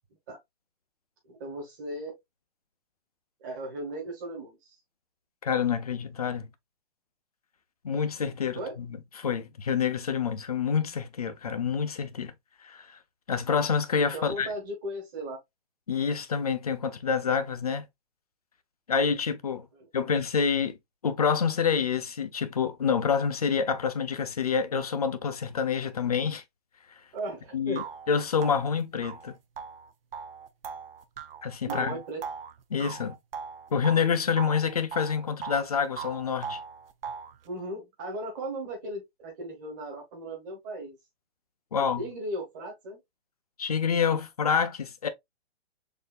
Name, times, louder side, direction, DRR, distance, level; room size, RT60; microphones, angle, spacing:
voice 1, 1.3-2.2 3.4-4.8 8.5-8.8 14.1-15.4 20.0-20.1 27.1-27.9 31.6-32.2 37.4-41.0 41.7-43.0, right 1 dB, 15° right, 1.3 m, -37 dB
voice 2, 5.4-6.5 7.8-12.3 12.6-13.0 13.3-14.5 15.9-17.9 18.9-19.7 19.9-20.8 21.0-26.4 27.5-29.4 31.4-32.0 32.7-33.1 33.7-36.6 41.7-42.1 43.6-45.1, left 6 dB, 35° left, 0.5 m, -27 dB
sound 1, 27.2-27.3 27.8-34.1 34.4-35.7 36.0-37.4, right 6 dB, 60° right, 0.6 m, -39 dB
6.6 x 2.7 x 2.3 m
hypercardioid pair, 175°, 33 cm